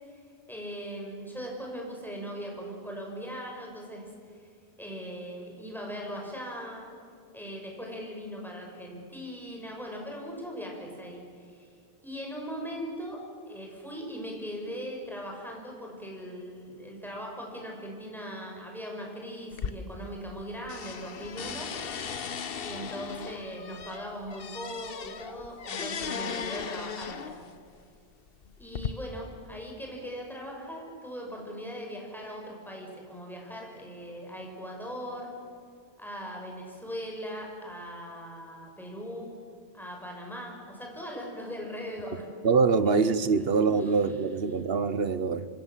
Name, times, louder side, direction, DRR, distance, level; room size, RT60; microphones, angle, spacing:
voice 1, 0.5-4.4 4.8-6.9 7.3-11.7 12.0-21.7 22.6-27.4 28.6-35.3 36.0-39.3 39.7-42.3 43.7-44.2, equal, ahead, -1 dB, 6.2 m, -39 dB
sound 1, 19.5-20.4 20.7-27.5 28.3-28.9, left 6 dB, 65° left, 1.1 m, -37 dB
voice 2, 42.4-45.5, right 5 dB, 65° right, 13 dB, 1.2 m, -24 dB
26.5 x 26.0 x 7.4 m, 2.3 s
omnidirectional pair, 1.1 m